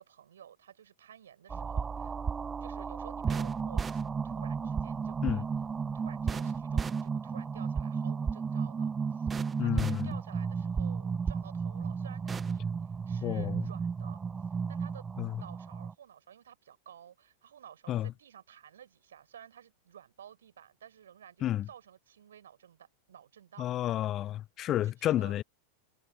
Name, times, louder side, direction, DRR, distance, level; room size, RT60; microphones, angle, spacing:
voice 1, 0.0-2.1 2.6-5.5 5.9-14.2 14.7-23.8 24.8-25.4, right 9 dB, 65° right, 5.3 m, -53 dB
sound 1, 1.5-15.9, right 5 dB, 15° right, 0.7 m, -33 dB
voice 2, 9.6-10.1 13.2-13.6 15.2-15.4 17.9-18.1 21.4-21.7 23.6-25.4, left 12 dB, 30° left, 0.5 m, -31 dB
figure-of-eight pair, 90°, 0 cm